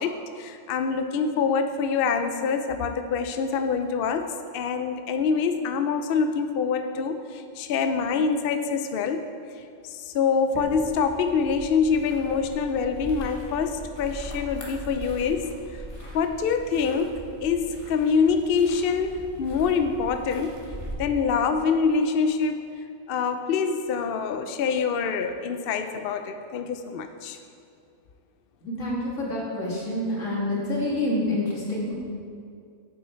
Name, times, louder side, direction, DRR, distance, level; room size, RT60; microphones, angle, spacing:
voice 1, 0.0-9.2 9.9-15.5 16.1-20.6 21.0-22.5 23.1-27.4, left 5 dB, 60° left, 7 dB, 0.6 m, -25 dB
sound 1, 10.5-20.9, equal, 25° left, 1.6 m, -41 dB
voice 2, 28.6-31.9, left 1 dB, 75° left, -4 dB, 2.3 m, -27 dB
8.2 x 8.1 x 4.4 m, 2.4 s
omnidirectional pair, 1.3 m